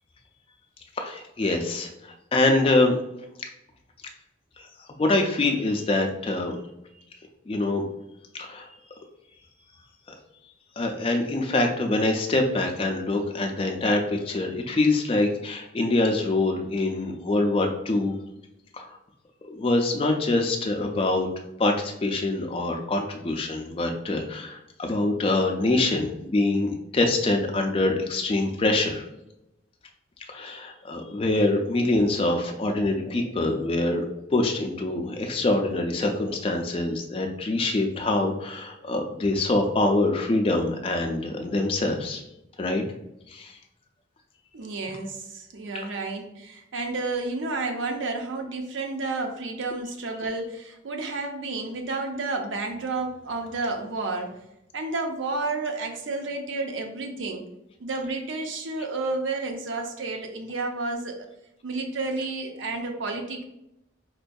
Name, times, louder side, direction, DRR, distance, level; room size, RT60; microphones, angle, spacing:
voice 1, 1.0-3.0 5.0-6.5 7.5-7.9 8.4-8.7 10.8-18.1 18.8-18.9 19.5-21.3 21.6-29.0 30.3-34.0 34.3-42.2 42.6-42.8 43.3-43.5, left 2 dB, 30° left, 2 dB, 0.4 m, -24 dB
voice 2, 44.5-54.3 54.7-57.4 57.8-61.2 61.6-63.4, right 3 dB, 80° right, 4 dB, 0.5 m, -31 dB
4.4 x 2.6 x 2.2 m, 0.87 s
head